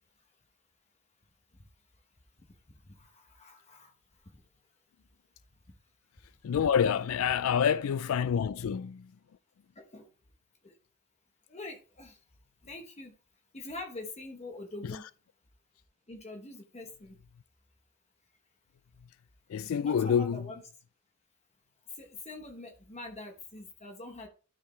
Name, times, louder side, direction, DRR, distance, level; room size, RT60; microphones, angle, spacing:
voice 1, 2.7-3.9 9.7-10.1 10.6-10.8 11.5-12.2 12.6-13.1 13.5-15.0 16.1-17.2 19.6-20.6 22.0-24.3, left 2 dB, 30° left, 1.1 m, -44 dB
voice 2, 6.4-9.0 19.5-20.4, left 7 dB, 75° left, 0.3 m, -27 dB
12.5 x 4.7 x 3.3 m
head